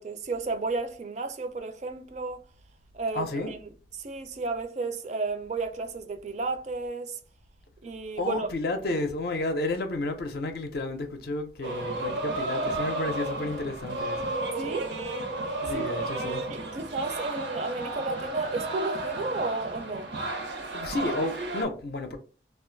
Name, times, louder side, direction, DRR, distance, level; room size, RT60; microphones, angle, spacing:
voice 1, 0.0-2.4 2.9-3.6 4.0-7.2 7.8-8.5 14.6-15.0 15.7-15.9 16.5-20.1, right 3 dB, 40° right, 0.4 m, -33 dB
voice 2, 3.1-3.5 8.2-14.4 15.6-16.5 20.5-22.2, left 2 dB, 60° left, 0.4 m, -32 dB
sound 1, 11.6-21.6, right 2 dB, 90° right, 0.8 m, -33 dB
2.5 x 2.3 x 3.7 m
head